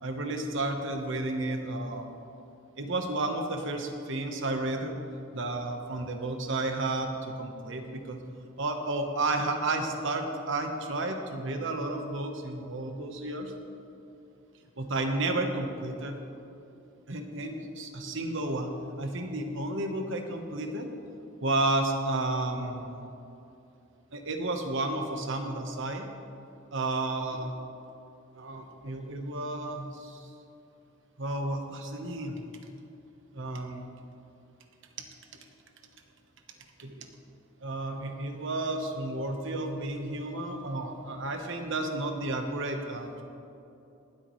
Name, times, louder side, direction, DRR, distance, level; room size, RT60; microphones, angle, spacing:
voice 1, 0.0-2.1 2.8-5.0 5.3-8.2 8.6-13.5 14.8-16.1 17.1-18.7 19.0-20.9 21.4-23.1 24.1-26.0 26.7-27.6 28.3-30.3 31.2-32.4 33.3-33.9 36.8-37.1 37.6-43.2, right 2 dB, 65° right, 4 dB, 1.1 m, -32 dB
21.0 x 8.3 x 3.2 m, 2.7 s
head